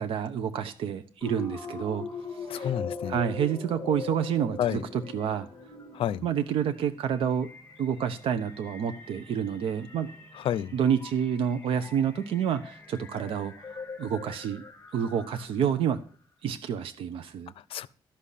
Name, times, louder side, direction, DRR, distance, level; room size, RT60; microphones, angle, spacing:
voice 1, 0.0-2.0 2.3-2.7 3.1-5.5 6.2-7.5 7.8-10.1 10.7-14.6 14.9-16.0 16.4-17.5, right 8 dB, 85° right, 0.9 m, -29 dB
sound 1, 1.2-15.8, left 4 dB, 20° left, 2.5 m, -42 dB
voice 2, 2.5-3.2 4.6-4.8 5.9-6.2 10.3-10.7 17.7-17.9, left 10 dB, 80° left, 0.6 m, -29 dB
13.0 x 5.7 x 8.4 m
cardioid pair, 120°, 9 cm